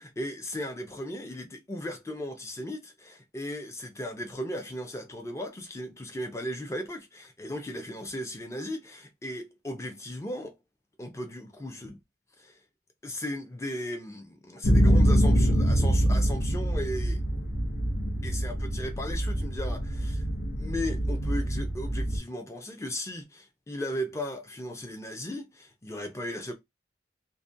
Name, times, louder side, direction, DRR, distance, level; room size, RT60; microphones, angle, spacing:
voice 1, 0.0-10.5 11.0-12.0 12.4-12.6 13.0-17.2 18.2-20.2 20.6-26.5, left 1 dB, 15° left, 0.4 m, -36 dB
sound 1, 14.6-22.2, equal, 85° left, 0.8 m, -25 dB
2.3 x 2.1 x 2.6 m
head